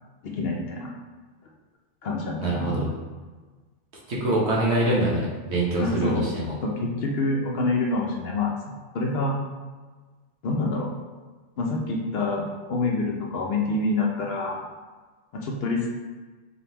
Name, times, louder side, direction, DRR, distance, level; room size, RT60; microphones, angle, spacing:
voice 1, 0.2-0.9 2.0-2.9 5.8-6.3 6.6-8.5 8.9-9.4 10.4-10.9 11.6-14.6 15.3-15.9, left 2 dB, 60° left, 0 dB, 0.8 m, -26 dB
voice 2, 2.4-2.9 4.1-6.5, right 1 dB, 65° right, -4 dB, 1.3 m, -24 dB
4.0 x 3.5 x 2.9 m, 1.3 s
omnidirectional pair, 1.2 m